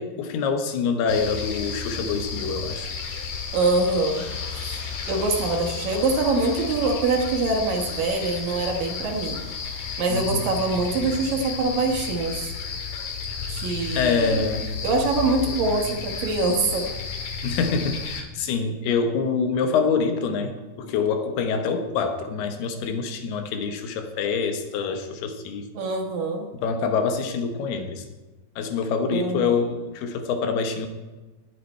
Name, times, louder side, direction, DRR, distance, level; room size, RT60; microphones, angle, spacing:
voice 1, 0.0-2.9 10.1-10.5 13.9-14.7 17.4-25.7 26.6-28.0 28.6-30.9, left 5 dB, 75° left, 6 dB, 3.1 m, -25 dB
sound 1, 1.1-18.2, left 5 dB, 60° left, 2.7 m, -32 dB
voice 2, 3.5-4.2 4.6-12.5 13.5-14.4 14.8-16.9 25.7-26.5 29.1-29.5, right 3 dB, 60° right, 2 dB, 2.9 m, -24 dB
19.0 x 8.6 x 4.4 m, 1.2 s
omnidirectional pair, 4.8 m